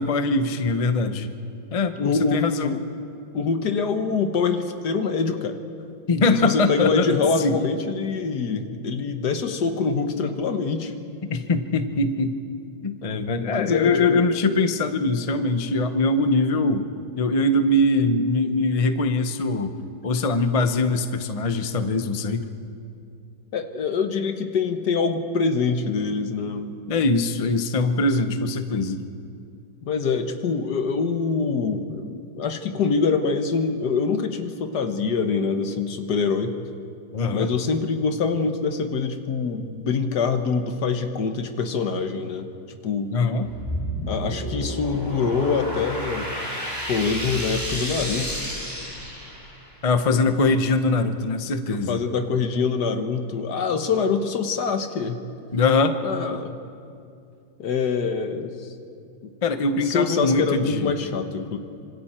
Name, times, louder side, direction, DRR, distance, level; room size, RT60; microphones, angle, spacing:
voice 1, 0.0-1.3 1.7-2.7 6.1-7.1 7.4-7.6 11.3-12.4 12.8-16.9 17.2-19.8 20.0-22.5 26.9-29.0 37.1-37.5 43.1-43.5 49.8-52.0 55.5-56.0 59.4-60.9, left 2 dB, 35° left, 8 dB, 0.6 m, -22 dB
voice 2, 2.0-2.8 3.3-5.6 6.4-10.9 13.5-14.2 23.5-26.7 29.8-36.5 37.3-42.5 42.8-43.1 44.1-46.3 46.9-48.4 50.5-50.6 51.7-55.2 56.0-56.6 57.6-58.5 59.2-61.6, left 5 dB, 65° left, 7 dB, 1.7 m, -25 dB
sound 1, 43.4-49.7, equal, 10° left, 3.3 m, -31 dB
26.0 x 26.0 x 4.4 m, 2.5 s
omnidirectional pair, 2.0 m